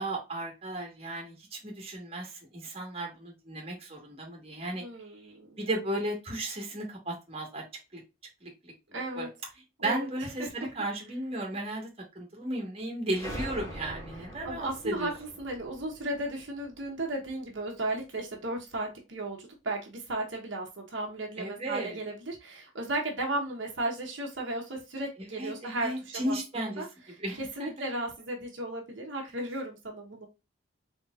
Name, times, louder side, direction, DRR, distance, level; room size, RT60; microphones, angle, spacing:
voice 1, 0.0-4.8 5.6-7.6 7.9-8.0 8.4-8.7 9.2-9.3 9.8-11.9 12.1-15.1 21.4-22.0 25.2-26.8 27.2-27.7, right 1 dB, 30° right, 1.5 m, -35 dB
voice 2, 4.8-5.6 8.9-9.3 9.8-10.1 10.4-10.7 14.4-26.9 27.4-30.3, right 2 dB, 65° right, 1.1 m, -35 dB
sound 1, 13.1-17.6, equal, 15° left, 2.2 m, -43 dB
4.1 x 3.5 x 2.5 m
head